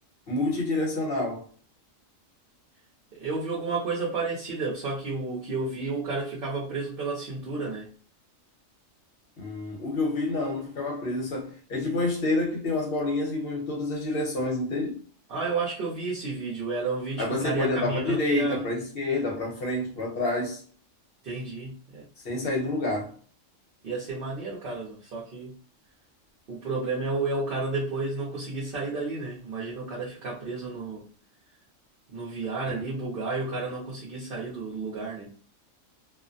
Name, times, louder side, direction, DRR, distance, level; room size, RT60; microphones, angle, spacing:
voice 1, 0.3-1.5 9.4-15.0 17.2-20.6 22.2-23.1, left 2 dB, 50° left, 1.0 m, -28 dB
voice 2, 3.1-7.9 15.3-18.6 21.2-22.1 23.8-25.5 26.5-31.0 32.1-35.3, right 3 dB, 55° right, 0.7 m, -31 dB
2.4 x 2.1 x 2.5 m
omnidirectional pair, 1.4 m